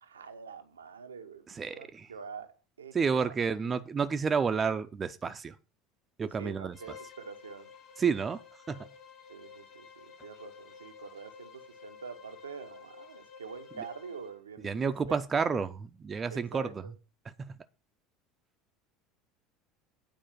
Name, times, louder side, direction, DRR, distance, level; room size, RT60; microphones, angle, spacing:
voice 1, 0.0-3.3 6.4-7.7 9.3-14.9 16.3-16.9, right 6 dB, 75° right, 1.0 m, -46 dB
voice 2, 1.5-2.1 2.9-5.6 6.2-6.8 8.0-8.4 8.7-8.9 13.8-13.9 14.6-15.8 16.0-16.8 17.4-17.6, right 5 dB, 25° right, 0.7 m, -30 dB
Bowed string instrument, 6.7-14.4, left 6 dB, 40° left, 2.9 m, -52 dB
9.2 x 4.7 x 7.4 m
figure-of-eight pair, 70°, 0 cm